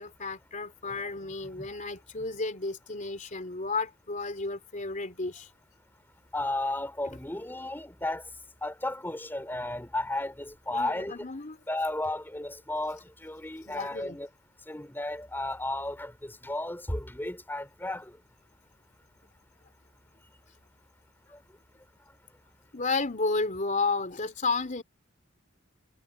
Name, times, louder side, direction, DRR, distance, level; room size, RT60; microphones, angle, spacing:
voice 1, 0.0-5.5 10.7-11.6 13.7-14.2 22.7-24.8, left 3 dB, 40° left, 3.6 m, -32 dB
voice 2, 6.3-8.2 8.6-11.1 11.7-14.3 14.7-18.1, left 2 dB, 10° left, 3.7 m, -33 dB
head